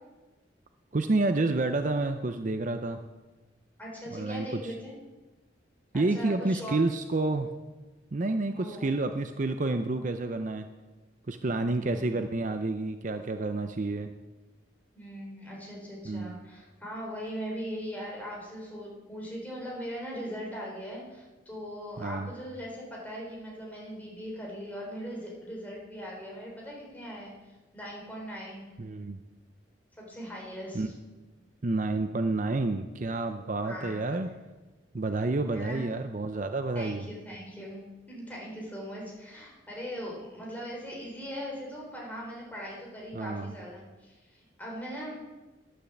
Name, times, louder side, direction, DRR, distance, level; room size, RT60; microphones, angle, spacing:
voice 1, 0.9-3.0 4.1-4.6 5.9-7.5 8.1-10.7 11.3-14.1 16.0-16.4 22.0-22.3 28.8-29.2 30.7-30.9 31.6-34.3 34.9-37.1 43.1-43.5, right 2 dB, 40° right, 8 dB, 0.5 m, -29 dB
voice 2, 3.8-4.9 5.9-6.8 8.5-8.9 11.4-12.1 14.9-27.3 27.7-28.7 30.0-30.9 33.6-34.0 35.5-35.9 36.7-37.8 38.1-45.2, equal, 10° left, -3 dB, 3.6 m, -40 dB
10.0 x 10.0 x 7.1 m, 1.2 s
head